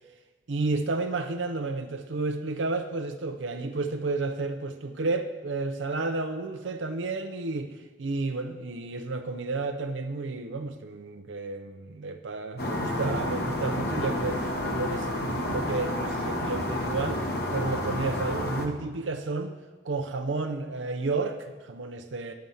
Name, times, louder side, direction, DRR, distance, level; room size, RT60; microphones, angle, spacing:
voice 1, 0.5-7.7 8.0-19.5 19.8-22.3, right 3 dB, 85° right, 6 dB, 0.6 m, -31 dB
sound 1, 12.6-18.7, left 1 dB, 55° left, 1.2 m, -30 dB
10.5 x 7.8 x 5.5 m, 1.3 s
head